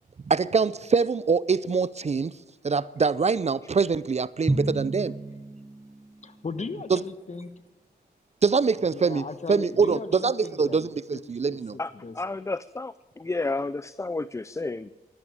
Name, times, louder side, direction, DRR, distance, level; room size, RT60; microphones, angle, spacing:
voice 1, 0.3-2.3 2.6-5.1 6.9-7.0 8.4-11.8, right 5 dB, 40° right, 0.5 m, -24 dB
Drum, 4.5-6.2, right 2 dB, 20° right, 1.1 m, -30 dB
voice 2, 6.2-7.5 8.9-11.2 11.7-12.1, left 4 dB, 40° left, 1.2 m, -37 dB
voice 3, 11.8-14.9, left 3 dB, 15° left, 0.4 m, -31 dB
13.0 x 12.0 x 8.6 m
cardioid pair, 55°, 18 cm